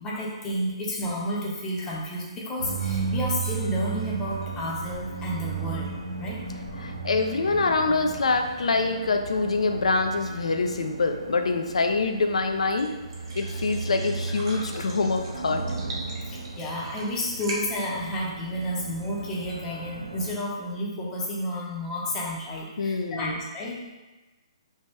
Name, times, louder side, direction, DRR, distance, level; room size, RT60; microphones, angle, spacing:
voice 1, 0.0-6.4 16.2-23.8, equal, 15° left, -4 dB, 0.5 m, -31 dB
sound 1, 2.6-20.3, right 5 dB, 85° right, 0.5 m, -35 dB
voice 2, 6.8-12.9 13.4-15.6 22.8-23.4, left 3 dB, 85° left, 5 dB, 0.3 m, -25 dB
sound 2, 10.6-19.1, right 1 dB, 45° right, 0.7 m, -43 dB
2.7 x 2.1 x 3.3 m, 1.1 s
hypercardioid pair, 150°, 3 cm